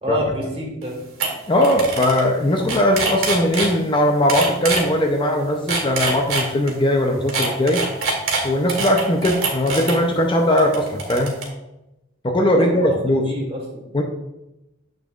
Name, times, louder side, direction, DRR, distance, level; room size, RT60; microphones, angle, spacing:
voice 1, 0.0-1.0 12.5-13.0 13.2-13.9, right 1 dB, 30° right, -1 dB, 2.0 m, -29 dB
sound 1, 0.8-0.9 1.2-1.3 1.6-2.2 2.5-3.7 4.3-4.8 5.5-6.7 7.3-9.9 10.6-11.4, right 4 dB, 80° right, 2.3 m, -23 dB
voice 2, 1.5-7.8 8.4-11.4 12.2-13.3 13.9-14.0, left 1 dB, 25° left, 2 dB, 0.6 m, -19 dB
8.3 x 6.5 x 2.4 m, 0.92 s
head